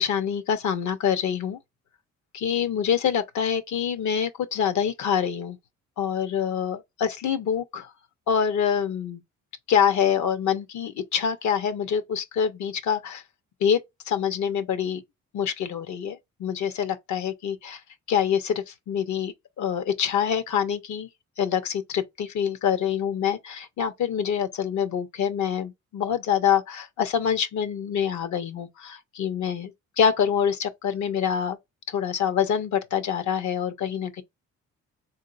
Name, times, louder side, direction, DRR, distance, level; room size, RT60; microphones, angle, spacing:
voice 1, 0.0-1.6 2.3-5.6 6.0-7.9 8.3-9.2 9.7-13.2 13.6-13.8 14.1-15.0 15.3-17.8 18.1-21.1 21.4-31.6 31.9-34.2, left 8 dB, 70° left, 0.8 m, -26 dB
3.9 x 2.6 x 2.5 m
cardioid pair, 90°, 30 cm